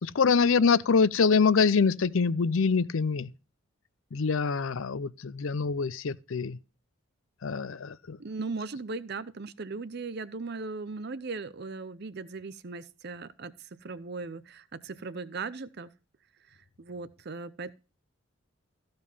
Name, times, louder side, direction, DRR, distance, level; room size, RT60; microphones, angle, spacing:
voice 1, 0.0-3.3 4.1-6.6 7.4-8.2, left 5 dB, 70° left, 0.5 m, -25 dB
voice 2, 8.2-13.5 13.8-15.9 16.8-17.7, right 4 dB, 50° right, 0.6 m, -38 dB
14.5 x 5.2 x 5.5 m
head